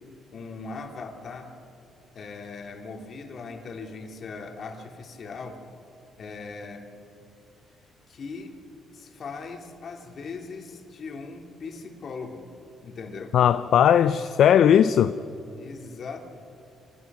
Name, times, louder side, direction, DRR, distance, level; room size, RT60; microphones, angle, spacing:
voice 1, 0.3-1.5 2.1-5.6 6.2-6.9 8.1-8.6 8.9-12.5 12.8-13.4 15.6-16.2, left 4 dB, 55° left, 2.8 m, -39 dB
voice 2, 13.3-15.2, left 9 dB, 70° left, 0.5 m, -18 dB
26.5 x 17.0 x 6.1 m
cardioid pair, 90°, 0 cm